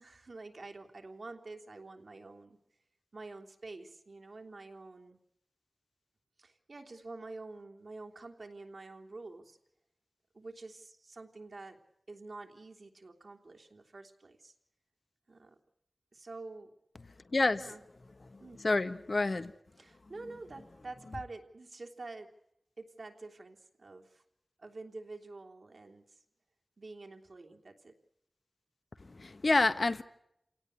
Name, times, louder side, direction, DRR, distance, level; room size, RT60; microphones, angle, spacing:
voice 1, 0.0-2.6 3.1-5.2 6.4-9.6 10.3-11.8 12.1-14.5 15.3-15.6 16.1-16.7 17.6-17.8 18.4-18.6 19.8-22.3 22.8-24.2 24.6-26.2 26.8-27.9, right 3 dB, 65° right, 2 dB, 3.2 m, -48 dB
voice 2, 18.6-19.5 29.1-30.0, left 3 dB, 55° left, 11 dB, 1.3 m, -28 dB
29.0 x 18.0 x 8.3 m, 0.80 s
wide cardioid pair, 80°, 0 cm